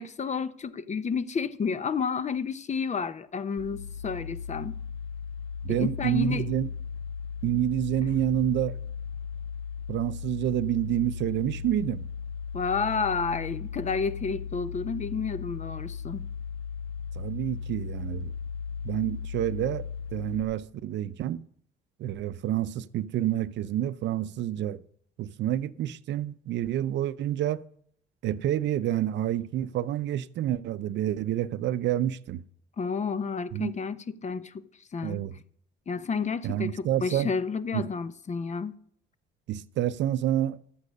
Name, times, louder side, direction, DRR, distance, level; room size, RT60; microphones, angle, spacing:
voice 1, 0.0-4.8 5.7-6.5 12.5-16.3 32.8-35.2 35.9-38.8, left 5 dB, 35° left, 0.8 m, -31 dB
sound 1, 3.6-20.4, left 6 dB, 85° left, 1.5 m, -37 dB
voice 2, 5.6-6.7 7.4-8.7 9.9-12.0 17.2-18.3 18.8-19.9 20.1-21.4 22.0-24.8 25.2-27.6 28.2-32.4 33.5-33.7 35.0-35.3 36.4-37.3 37.7-37.8 39.5-40.6, right 12 dB, 60° right, 0.6 m, -28 dB
12.5 x 8.4 x 5.3 m
supercardioid pair, 65°, 20 cm